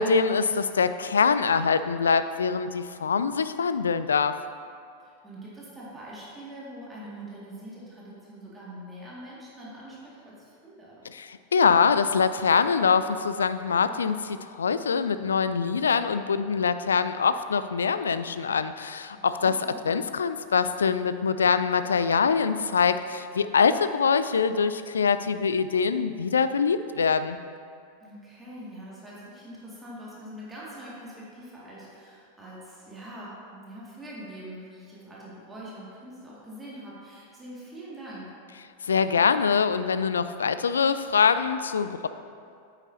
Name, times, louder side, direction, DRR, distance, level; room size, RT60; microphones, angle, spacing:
voice 1, 0.0-4.3 11.1-19.6 19.8-27.4 38.8-42.1, left 5 dB, 70° left, 12 dB, 0.3 m, -24 dB
voice 2, 5.0-11.1 19.1-19.9 28.0-38.3, right 1 dB, 10° right, -7 dB, 2.1 m, -43 dB
9.0 x 8.9 x 2.8 m, 2.4 s
figure-of-eight pair, 90°, 0 cm